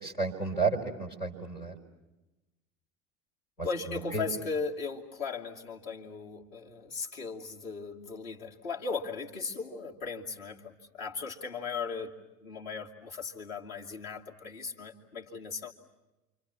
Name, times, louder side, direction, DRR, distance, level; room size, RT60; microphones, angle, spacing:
voice 1, 0.0-1.7 3.6-4.2, right 4 dB, 90° left, 2 dB, 4.5 m, -32 dB
voice 2, 3.6-12.1 12.4-15.7, left 5 dB, 65° left, 0 dB, 2.8 m, -37 dB
29.0 x 25.5 x 7.3 m, 1.0 s
figure-of-eight pair, 70°, 44 cm